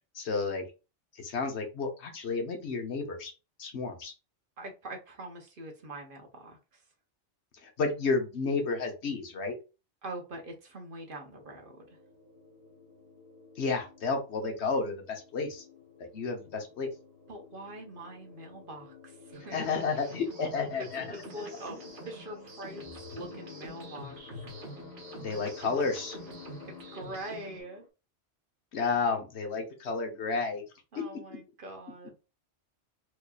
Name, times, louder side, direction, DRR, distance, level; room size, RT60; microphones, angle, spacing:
voice 1, 0.1-0.7 1.1-3.3 3.6-4.1 7.6-9.6 13.6-15.7 16.0-16.9 19.5-21.0 25.2-26.2 28.7-30.6 30.9-31.2, left 4 dB, 70° left, 5 dB, 1.2 m, -31 dB
voice 2, 4.6-6.8 10.0-12.0 17.3-19.8 21.1-21.8 22.0-24.1 26.6-27.9 30.9-32.1, right 1 dB, 55° right, 3 dB, 0.9 m, -43 dB
sound 1, 11.4-27.9, left 5 dB, 40° left, 1.1 m, -51 dB
sound 2, 19.3-27.6, right 1 dB, 85° right, 1.6 m, -47 dB
4.6 x 2.8 x 2.3 m, 0.30 s
omnidirectional pair, 1.2 m